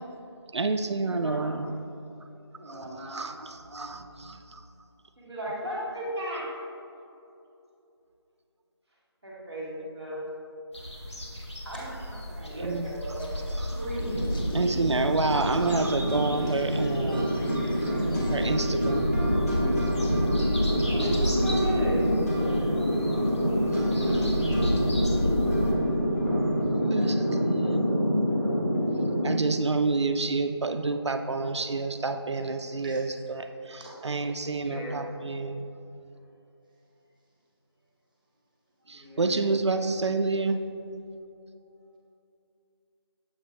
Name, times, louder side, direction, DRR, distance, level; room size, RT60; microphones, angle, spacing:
voice 1, 0.5-1.8 2.6-4.6 12.6-12.9 13.6-13.8 14.5-17.4 17.8-17.9 18.3-19.2 23.7-24.4 26.9-27.8 29.2-35.7 38.9-40.6, right 3 dB, 80° right, 7 dB, 0.4 m, -29 dB
voice 2, 1.2-1.6 2.6-3.3 3.6-3.9 5.2-6.5 9.2-10.2 11.6-13.3 20.6-23.2 24.1-24.3 25.1-25.2 34.5-35.0 38.8-39.3, equal, 5° left, -16 dB, 0.6 m, -36 dB
sound 1, 10.7-25.7, equal, 80° left, 1.4 m, -32 dB
sound 2, 13.2-18.5, left 1 dB, 50° left, 0.8 m, -42 dB
voice 3, 13.7-14.2 20.0-20.1 32.8-33.0 33.8-34.1, right 1 dB, 20° right, -5 dB, 1.2 m, -39 dB
sound 3, 14.0-29.3, equal, 35° left, 1.4 m, -27 dB
7.1 x 5.1 x 3.2 m, 2.8 s
figure-of-eight pair, 170°, 14 cm